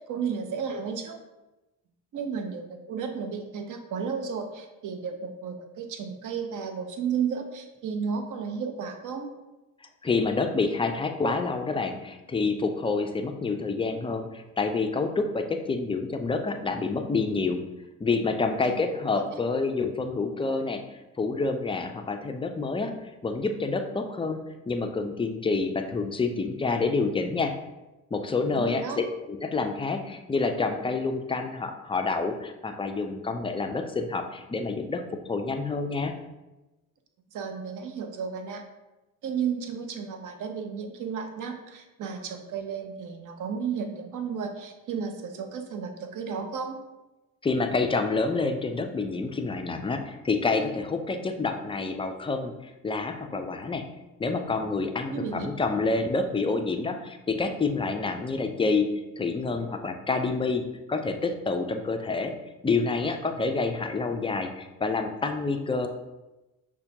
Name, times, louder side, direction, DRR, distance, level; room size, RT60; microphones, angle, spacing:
voice 1, 0.1-1.2 2.1-9.3 18.7-18.8 19.1-19.4 28.5-29.0 37.3-38.6 39.2-46.8 55.1-55.5, right 6 dB, 55° right, 5 dB, 0.7 m, -33 dB
voice 2, 10.0-17.6 18.0-20.8 21.2-22.9 23.2-24.4 24.7-27.5 28.1-35.0 35.3-36.1 47.4-53.8 54.2-60.6 60.9-62.3 62.6-65.9, left 3 dB, 15° left, 5 dB, 0.3 m, -28 dB
5.5 x 2.2 x 2.7 m, 1.0 s
supercardioid pair, 70°, 37 cm